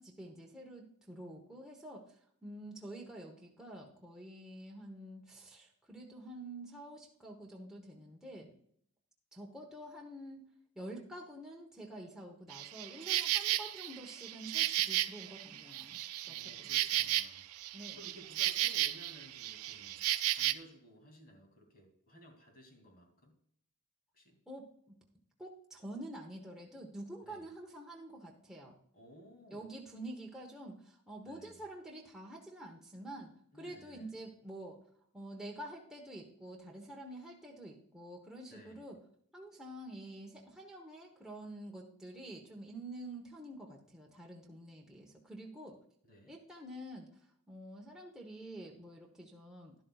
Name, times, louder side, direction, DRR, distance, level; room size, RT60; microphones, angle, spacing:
voice 1, 0.0-8.5 9.3-10.5 10.7-16.0 16.3-17.0 17.7-18.0 24.5-25.0 25.4-28.8 29.5-34.8 35.1-39.0 39.3-45.8 46.3-49.8, right 1 dB, 5° right, -2 dB, 1.1 m, -48 dB
Insect, 12.5-20.5, right 14 dB, 70° right, 0.4 m, -34 dB
voice 2, 16.2-17.4 17.9-20.0 20.3-23.3 24.1-24.4 27.2-27.5 28.9-29.7 31.2-31.6 33.5-34.1 38.5-38.9 46.0-46.3, equal, 40° left, 3 dB, 2.7 m, -57 dB
12.0 x 11.5 x 2.4 m, 0.66 s
head